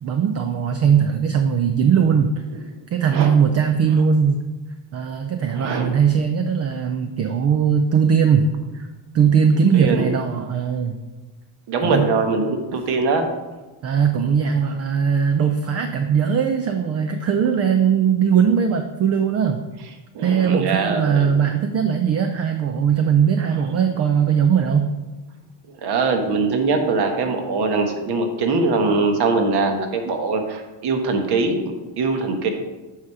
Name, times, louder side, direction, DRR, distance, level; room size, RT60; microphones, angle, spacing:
voice 1, 0.0-2.3 2.9-4.5 4.9-8.9 9.1-11.0 11.8-12.1 12.7-12.8 13.8-19.6 20.2-24.9, right 7 dB, 35° right, 7 dB, 0.4 m, -19 dB
voice 2, 5.5-5.9 9.7-10.1 11.7-13.3 20.1-21.3 25.8-32.5, right 3 dB, 50° right, 5 dB, 1.3 m, -22 dB
8.2 x 5.0 x 4.7 m, 1.2 s
cardioid pair, 135°, 49 cm